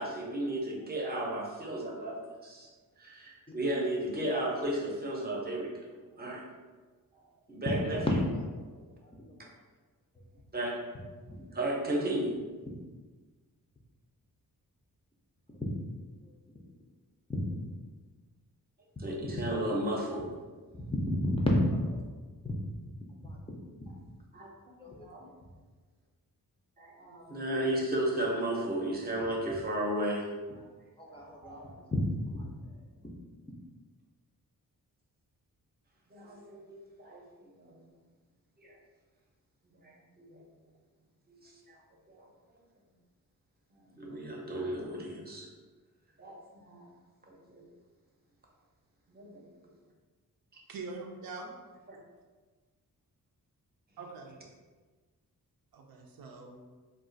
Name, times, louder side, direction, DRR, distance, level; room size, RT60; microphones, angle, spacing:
voice 1, 0.0-2.7 3.0-5.9 6.2-6.4 7.5-8.0 10.5-10.8 11.5-12.4 19.0-20.3 24.3-25.3 26.8-30.3 31.1-31.6 36.1-37.8 38.6-38.7 39.8-40.4 41.4-41.6 42.1-42.2 43.9-45.5 46.2-46.9 47.3-47.7 49.1-49.4 51.9-52.0, right 1 dB, 25° right, -1 dB, 0.7 m, -34 dB
voice 2, 7.9-9.4 10.1-10.2 11.3-11.4 15.5-16.3 17.3-17.4 20.7-22.0 22.4-22.7 23.2-23.4 23.7-23.8 24.8-25.1 31.0-32.1 32.3-32.8, left 1 dB, 15° left, -2 dB, 0.4 m, -32 dB
voice 3, 50.7-51.5 54.0-54.4 55.7-56.6, right 3 dB, 80° right, 1 dB, 0.5 m, -43 dB
2.4 x 2.4 x 3.8 m, 1.3 s
wide cardioid pair, 100°, 36 cm